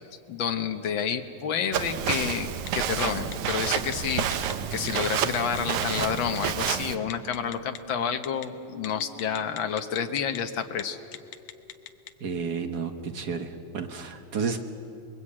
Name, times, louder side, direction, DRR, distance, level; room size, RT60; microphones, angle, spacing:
voice 1, 0.3-11.0, left 7 dB, 60° left, 7 dB, 1.3 m, -29 dB
Walk footsteps, 1.7-7.0, right 9 dB, 80° right, 2.3 m, -29 dB
sound 1, 2.4-12.2, right 2 dB, 30° right, 1.4 m, -46 dB
Telephone, 2.7-3.0 3.3-4.5 4.9-5.1 5.3-6.4 7.1-7.8 8.2-8.5 8.8-10.4 10.7-10.8 11.1-12.1, left 11 dB, 80° left, 2.2 m, -40 dB
voice 2, 12.2-14.6, right 5 dB, 50° right, 5 dB, 1.2 m, -31 dB
29.0 x 21.5 x 8.7 m, 2.5 s
omnidirectional pair, 3.3 m